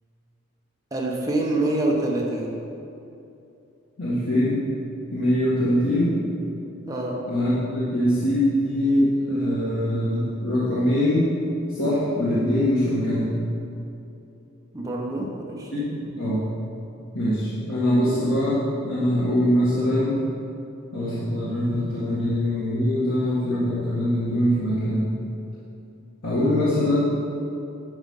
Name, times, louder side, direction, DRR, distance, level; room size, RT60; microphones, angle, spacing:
voice 1, 0.9-2.6 6.9-7.2 14.7-15.7, right 2 dB, 15° right, -2 dB, 1.0 m, -26 dB
voice 2, 4.0-4.6 5.1-6.1 7.3-11.3 11.7-13.3 15.7-16.5 17.1-20.2 20.9-25.1 26.2-27.0, left 1 dB, 85° left, -10 dB, 1.8 m, -23 dB
11.5 x 5.1 x 5.6 m, 2.8 s
head